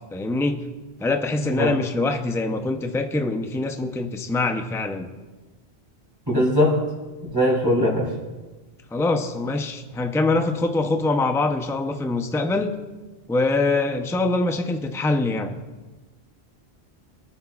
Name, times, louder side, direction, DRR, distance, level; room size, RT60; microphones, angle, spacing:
voice 1, 0.1-0.6 1.0-5.1 8.9-12.7 13.3-15.6, left 2 dB, 5° left, 5 dB, 0.5 m, -24 dB
voice 2, 1.4-1.7 6.3-6.8 7.3-8.1, left 1 dB, 20° right, -4 dB, 3.6 m, -20 dB
23.0 x 9.6 x 2.4 m, 1.2 s
omnidirectional pair, 1.1 m